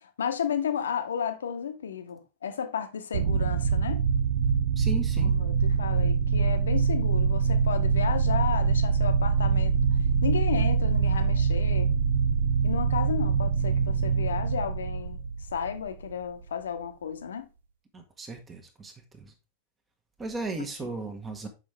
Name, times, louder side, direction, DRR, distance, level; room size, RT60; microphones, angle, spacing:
voice 1, 0.0-4.0 5.2-9.7 10.2-11.9 12.6-15.2 15.5-17.5, left 7 dB, 65° left, 0.9 m, -33 dB
sound 1, 3.1-16.1, right 5 dB, 60° right, 0.6 m, -24 dB
voice 2, 4.8-5.3 17.9-19.3 20.2-21.5, right 2 dB, 15° right, 1.2 m, -36 dB
7.4 x 5.5 x 3.3 m
figure-of-eight pair, 90°, 0 cm